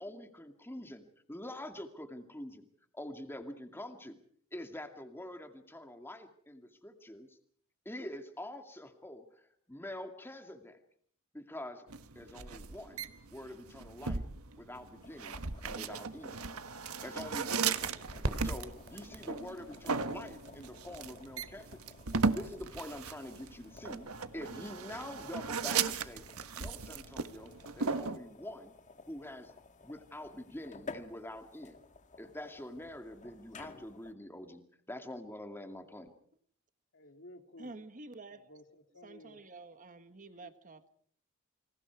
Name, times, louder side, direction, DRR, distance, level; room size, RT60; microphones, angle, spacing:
voice 1, 0.0-2.6 2.9-4.2 4.5-7.4 7.8-10.8 11.3-11.9 12.1-14.3 14.6-16.4 17.0-18.0 18.4-21.9 22.3-24.1 24.3-26.2 26.5-28.7 29.1-29.5 29.8-31.8 32.2-36.1, left 1 dB, 10° left, 2.3 m, -46 dB
sound 1, 11.9-28.2, right 5 dB, 90° right, 1.4 m, -37 dB
sound 2, 15.0-34.1, left 3 dB, 35° left, 1.5 m, -54 dB
sound 3, 18.0-23.9, right 1 dB, 65° right, 3.1 m, -45 dB
voice 2, 36.9-37.8 38.3-39.4 40.3-40.5, left 1 dB, 60° left, 2.8 m, -55 dB
voice 3, 37.6-38.4 39.0-40.9, right 2 dB, 35° right, 1.4 m, -49 dB
29.0 x 26.0 x 4.8 m
head